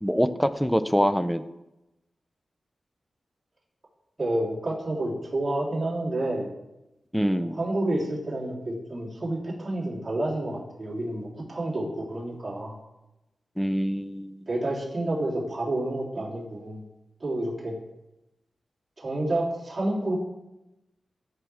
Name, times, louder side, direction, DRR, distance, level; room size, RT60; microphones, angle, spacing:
voice 1, 0.0-1.4 7.1-7.6 13.6-14.3, equal, ahead, 12 dB, 0.5 m, -24 dB
voice 2, 4.2-6.5 7.4-12.8 14.5-16.8 17.2-17.7 19.0-20.2, right 1 dB, 30° right, -6 dB, 3.5 m, -29 dB
14.5 x 6.0 x 3.5 m, 0.94 s
wide cardioid pair, 100°, 0 cm